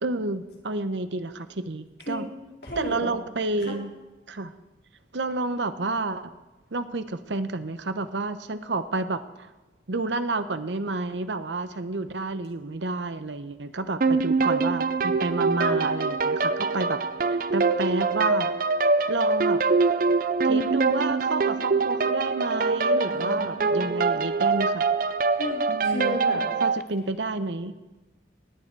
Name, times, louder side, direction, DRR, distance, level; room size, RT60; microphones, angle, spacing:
voice 1, 0.0-2.3 2.8-3.9 4.3-4.5 5.1-6.3 6.7-9.5 9.9-17.0 17.3-18.5 19.1-19.6 20.4-24.9 25.7-26.2 26.6-27.7, right 3 dB, 80° right, 11 dB, 0.9 m, -30 dB
voice 2, 2.6-3.1 3.6-3.8 23.0-24.1 25.4-26.4, left 1 dB, 65° left, -2 dB, 3.9 m, -34 dB
sound 1, 14.0-26.8, right 4 dB, 50° right, 0.6 m, -24 dB
19.0 x 10.0 x 4.7 m, 1.2 s
head